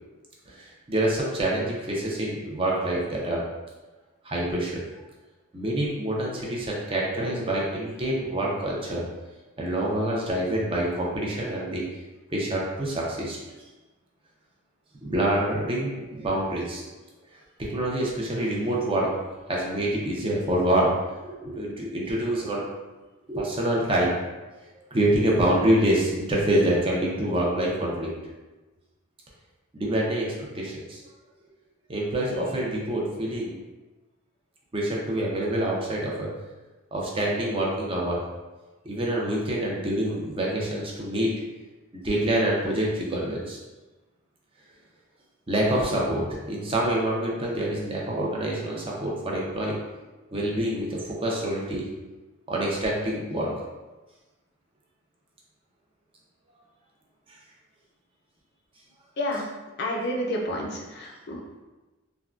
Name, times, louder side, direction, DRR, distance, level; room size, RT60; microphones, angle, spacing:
voice 1, 0.5-3.4 4.2-4.8 5.5-9.0 9.6-11.8 12.3-13.4 15.0-16.8 17.6-19.1 19.5-22.7 23.3-24.1 24.9-28.1 29.7-31.0 31.9-33.5 34.7-36.3 36.9-38.2 38.9-41.3 41.9-43.6 45.5-49.8 50.3-51.8 52.5-53.5, right 1 dB, 25° right, -4 dB, 0.5 m, -26 dB
voice 2, 59.8-61.4, left 1 dB, 55° left, 0 dB, 0.4 m, -29 dB
3.6 x 2.2 x 2.3 m, 1.2 s
head